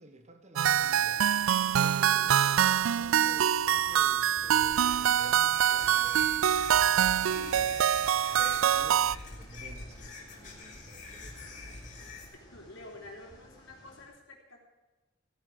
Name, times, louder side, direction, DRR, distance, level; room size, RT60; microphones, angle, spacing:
voice 1, 0.0-6.5 6.9-7.8 8.2-11.6, right 1 dB, 35° right, 7 dB, 1.4 m, -51 dB
sound 1, 0.6-9.2, right 9 dB, 85° right, 0.4 m, -25 dB
sound 2, 0.7-14.0, left 1 dB, 20° left, 3.5 m, -53 dB
voice 2, 1.9-2.4 7.2-8.1 12.5-14.6, left 1 dB, 70° left, 0 dB, 3.5 m, -50 dB
sound 3, 4.6-12.3, left 3 dB, 40° left, 3.4 m, -45 dB
15.5 x 10.0 x 6.3 m, 1.2 s
head